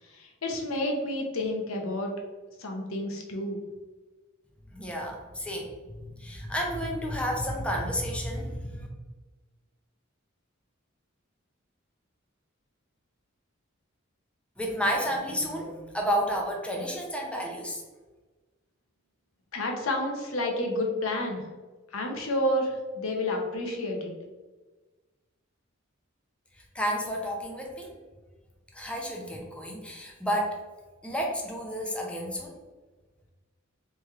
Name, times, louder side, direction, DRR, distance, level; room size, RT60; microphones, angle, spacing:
voice 1, 0.1-2.1 2.6-3.6 19.5-21.4 21.9-24.1, left 1 dB, 80° left, 1 dB, 0.8 m, -30 dB
voice 2, 4.7-5.7 6.2-8.9 14.6-17.8 26.7-28.0 28.7-30.6 31.0-32.5, equal, 5° left, -1 dB, 0.6 m, -31 dB
3.2 x 3.0 x 3.5 m, 1.3 s
head